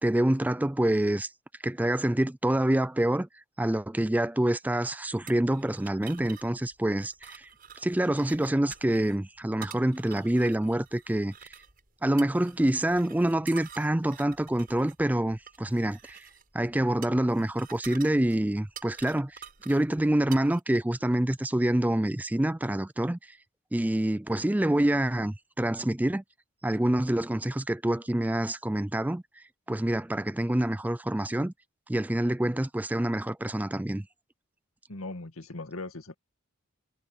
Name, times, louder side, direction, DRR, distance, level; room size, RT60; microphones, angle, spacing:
voice 1, 0.0-1.3 1.6-3.3 3.6-7.5 7.8-11.3 12.0-16.3 16.5-23.4 23.7-26.2 26.6-29.2 29.7-31.5 31.9-34.1, right 1 dB, 10° right, 0.4 m, -26 dB
sound 1, 5.3-20.6, right 8 dB, 45° right, 7.6 m, -49 dB
voice 2, 34.9-36.1, left 2 dB, 85° left, 2.2 m, -39 dB
head